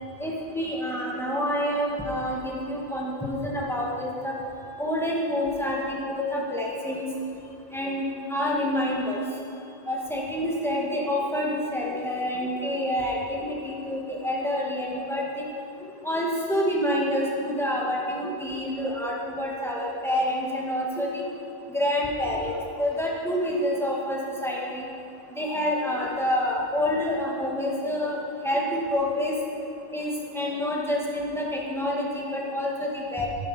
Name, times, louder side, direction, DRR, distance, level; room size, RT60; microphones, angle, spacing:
voice 1, 0.2-4.4 4.8-7.0 7.7-9.2 9.9-15.4 16.0-21.3 21.7-24.9 25.4-28.2 28.4-29.3 29.9-33.3, left 1 dB, ahead, -4 dB, 2.1 m, -27 dB
14.0 x 11.0 x 5.2 m, 2.6 s
omnidirectional pair, 1.0 m